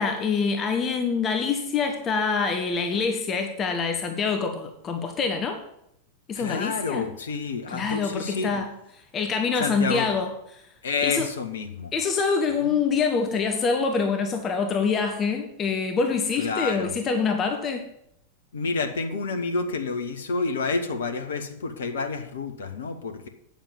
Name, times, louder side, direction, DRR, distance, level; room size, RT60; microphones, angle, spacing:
voice 1, 0.0-5.6 6.3-7.1 7.7-8.7 9.1-10.6 11.0-11.3 11.9-17.9, left 5 dB, 25° left, 5 dB, 1.4 m, -25 dB
voice 2, 6.3-8.6 9.6-10.1 10.8-11.9 12.6-12.7 16.4-16.9 18.5-23.3, left 4 dB, 65° left, 7 dB, 1.3 m, -29 dB
9.2 x 7.3 x 7.3 m, 0.76 s
figure-of-eight pair, 90°, 0 cm